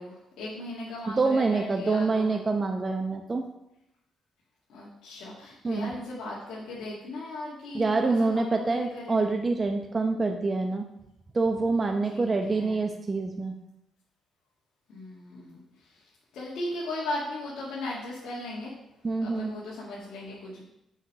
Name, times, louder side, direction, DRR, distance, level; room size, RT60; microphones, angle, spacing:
voice 1, 0.0-2.4 4.7-9.2 12.1-12.8 14.9-15.6 15.9-16.0 16.3-18.7 19.2-20.6, left 1 dB, 75° left, -7 dB, 1.9 m, -37 dB
voice 2, 1.1-3.4 5.6-5.9 7.7-10.9 11.3-13.5 19.0-19.5, right 3 dB, 30° right, 4 dB, 0.7 m, -26 dB
6.5 x 5.1 x 6.4 m, 0.86 s
cardioid pair, 90°, 0 cm